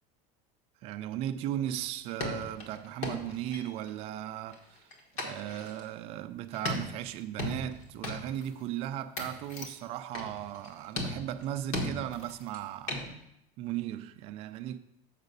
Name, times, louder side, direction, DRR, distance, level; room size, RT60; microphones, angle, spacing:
voice 1, 0.8-4.9 5.1-13.1 13.6-14.8, right 12 dB, 35° right, 0.4 m, -37 dB
sound 1, 1.8-1.9 2.2-4.0 4.5-5.8 6.5-8.5 8.8-8.9 9.2-9.8 10.1-10.7 11.0-12.6 12.9-13.1, left 2 dB, 40° left, 1.2 m, -37 dB
6.5 x 4.9 x 6.7 m
cardioid pair, 175°, 18 cm